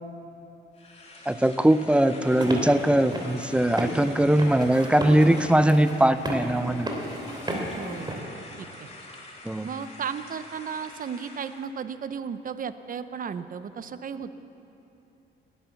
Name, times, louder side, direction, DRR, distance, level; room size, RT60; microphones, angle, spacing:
sound 1, 0.7-11.7, left 2 dB, 30° left, 3.0 m, -46 dB
voice 1, 1.3-6.9 9.4-9.7, right 1 dB, 5° right, 12 dB, 0.6 m, -21 dB
sound 2, 2.2-8.2, equal, 20° right, 3.1 m, -34 dB
voice 2, 7.5-8.2 8.6-8.9 9.6-14.3, right 7 dB, 45° right, 12 dB, 0.8 m, -35 dB
18.0 x 11.0 x 7.1 m, 3.0 s
cardioid pair, 90°, 20 cm